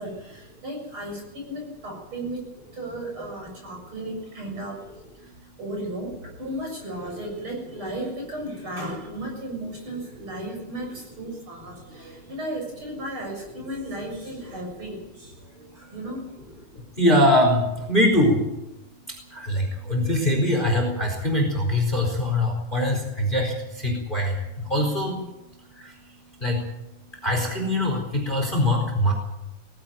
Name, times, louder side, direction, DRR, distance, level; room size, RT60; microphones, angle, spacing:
voice 1, 0.0-16.5, right 1 dB, 40° right, 0 dB, 7.9 m, -35 dB
voice 2, 17.0-17.6 17.9-18.4 19.5-23.5 23.8-24.3 24.7-25.1 26.4-26.6 27.2-29.1, left 1 dB, 15° left, 2 dB, 4.2 m, -22 dB
19.5 x 16.5 x 9.2 m, 0.95 s
omnidirectional pair, 3.6 m